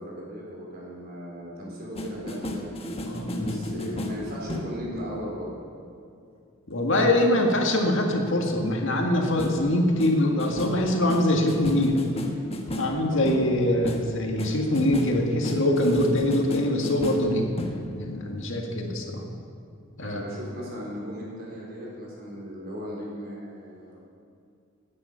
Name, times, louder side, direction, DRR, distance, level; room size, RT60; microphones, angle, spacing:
voice 1, 0.0-2.9 3.4-5.5 13.0-13.4 20.0-24.0, equal, 50° right, -4 dB, 4.4 m, -37 dB
sound 1, 2.0-5.2 9.4-9.7 10.0-18.0, left 1 dB, 30° left, 1.3 m, -34 dB
voice 2, 3.0-3.8 6.7-12.0 12.8-17.5 17.9-19.2 20.0-20.2, left 1 dB, 65° left, 2 dB, 1.9 m, -24 dB
17.5 x 9.6 x 5.7 m, 2.4 s
head